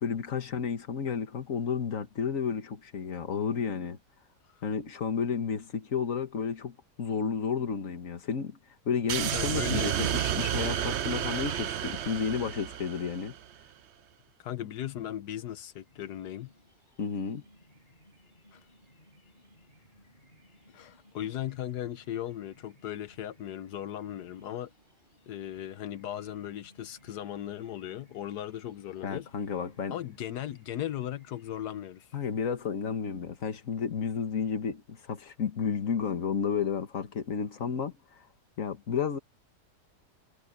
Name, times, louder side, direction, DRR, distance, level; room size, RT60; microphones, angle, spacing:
voice 1, 0.0-4.0 4.6-8.6 8.9-13.3 17.0-17.4 29.0-30.0 32.1-38.2 38.6-39.2, left 6 dB, 55° left, 1.9 m, -32 dB
sound 1, 9.1-13.4, right 10 dB, 55° right, 0.8 m, -31 dB
voice 2, 9.3-9.9 14.4-16.5 18.5-18.6 20.7-24.7 25.3-29.3 29.9-32.2, left 11 dB, 85° left, 1.4 m, -37 dB
sound 2, 15.9-32.4, left 1 dB, 30° left, 5.2 m, -61 dB
omnidirectional pair, 1.7 m